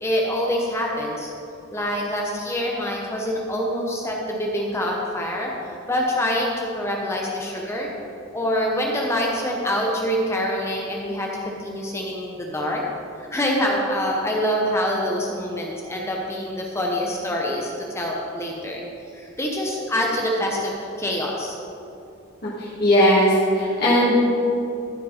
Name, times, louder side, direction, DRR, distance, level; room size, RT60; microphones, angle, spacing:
voice 1, 0.0-1.3 1.7-5.5 5.9-7.9 8.3-12.8 13.2-18.8 19.1-21.6, equal, 15° left, -1 dB, 0.8 m, -25 dB
voice 2, 22.8-24.4, equal, 50° left, -8 dB, 2.3 m, -17 dB
15.0 x 5.2 x 4.2 m, 2.7 s
head